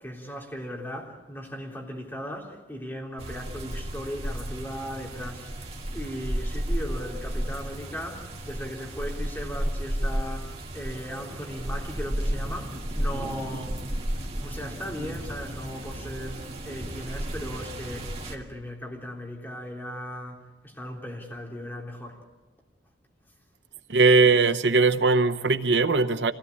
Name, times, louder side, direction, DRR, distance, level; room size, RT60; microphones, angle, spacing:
voice 1, 0.0-5.5 5.9-13.8 14.4-22.2, equal, 10° left, 3.6 m, -37 dB
sound 1, 3.2-18.4, right 1 dB, 35° right, 2.5 m, -33 dB
voice 2, 23.9-26.3, right 3 dB, 85° right, 0.9 m, -20 dB
26.5 x 17.0 x 8.6 m
head